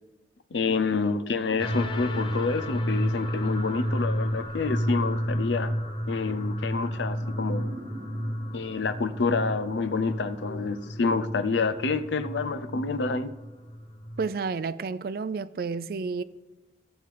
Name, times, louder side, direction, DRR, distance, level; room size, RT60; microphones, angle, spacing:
voice 1, 0.5-5.7 6.1-7.7 8.5-13.3, left 4 dB, 85° left, 0.6 m, -28 dB
sound 1, 1.6-14.3, equal, 30° left, 0.7 m, -31 dB
sound 2, 7.1-10.1, right 1 dB, 80° right, 1.2 m, -45 dB
voice 2, 14.2-16.2, right 4 dB, 55° right, 0.4 m, -30 dB
15.0 x 7.9 x 3.4 m
head